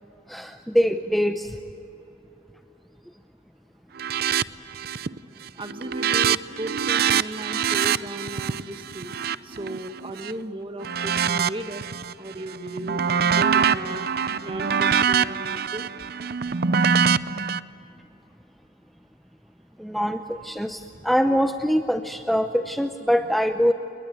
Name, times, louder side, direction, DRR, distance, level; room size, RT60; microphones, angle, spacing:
voice 1, 0.3-1.6 19.8-23.7, equal, ahead, 6 dB, 0.6 m, -23 dB
sound 1, 4.0-4.4 4.7-5.2 5.5-10.3 10.8-12.1 12.5-17.6, right 7 dB, 55° right, 0.6 m, -24 dB
voice 2, 5.5-9.1 9.4-11.8 12.2-14.1 14.4-15.9, right 1 dB, 30° right, 6 dB, 1.7 m, -36 dB
29.5 x 20.5 x 9.5 m, 2.9 s
head